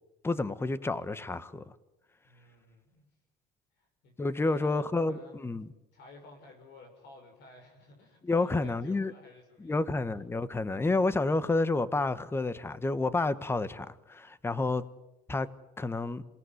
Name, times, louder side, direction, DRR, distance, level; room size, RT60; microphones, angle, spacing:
voice 1, 0.2-1.6 4.2-5.7 8.2-9.1 9.6-14.8 15.3-15.5 15.8-16.2, left 3 dB, 15° left, 15 dB, 1.1 m, -29 dB
voice 2, 2.2-3.0 3.8-9.8, left 2 dB, 65° left, 3 dB, 6.3 m, -54 dB
27.5 x 18.5 x 9.6 m, 1.0 s
cardioid pair, 125°, 19 cm